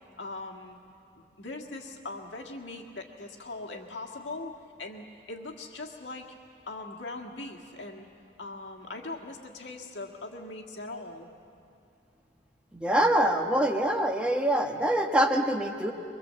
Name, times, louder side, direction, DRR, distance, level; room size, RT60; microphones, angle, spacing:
voice 1, 0.2-0.8 1.2-4.5 4.8-6.4 6.7-8.1 8.4-11.3, left 2 dB, 80° left, 1 dB, 1.8 m, -40 dB
voice 2, 12.7-15.9, right 1 dB, 5° right, 2 dB, 1.2 m, -25 dB
24.0 x 23.5 x 7.5 m, 2.6 s
head